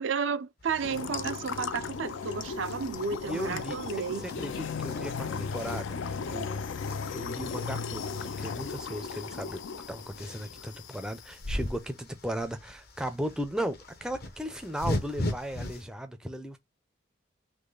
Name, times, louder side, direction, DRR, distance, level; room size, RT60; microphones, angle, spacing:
voice 1, 0.0-4.3, right 6 dB, 70° right, 0.4 m, -32 dB
sound 1, 0.6-15.8, left 1 dB, 50° left, 0.8 m, -41 dB
sound 2, 0.8-11.2, left 5 dB, 70° left, 0.4 m, -36 dB
voice 2, 3.2-3.8 4.2-6.5 7.1-9.6 9.9-16.6, equal, 5° right, 0.4 m, -36 dB
3.8 x 3.0 x 3.7 m
head